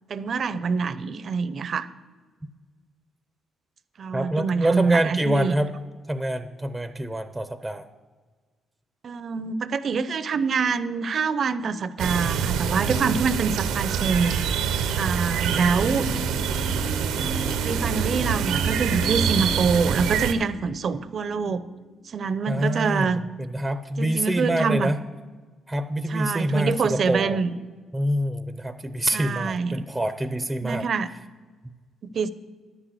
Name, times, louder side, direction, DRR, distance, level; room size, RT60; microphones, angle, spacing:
voice 1, 0.1-1.9 4.0-5.6 9.0-16.1 17.6-21.6 22.1-23.2 24.0-24.9 26.1-27.5 29.1-29.8 30.6-31.1 32.0-32.3, right 5 dB, 50° right, 14 dB, 0.6 m, -25 dB
voice 2, 4.1-5.7 6.1-7.9 22.5-23.1 23.4-25.0 25.7-27.4 27.9-30.8, right 1 dB, 5° right, 9 dB, 0.6 m, -26 dB
An overlook above a tree studded valley - thrush song, 12.0-20.3, right 7 dB, 90° right, 0.7 m, -25 dB
sound 1, 15.8-21.8 22.0-22.1, left 1 dB, 85° left, 2.2 m, -36 dB
11.0 x 6.1 x 8.1 m, 1.4 s
cardioid pair, 90°, 0 cm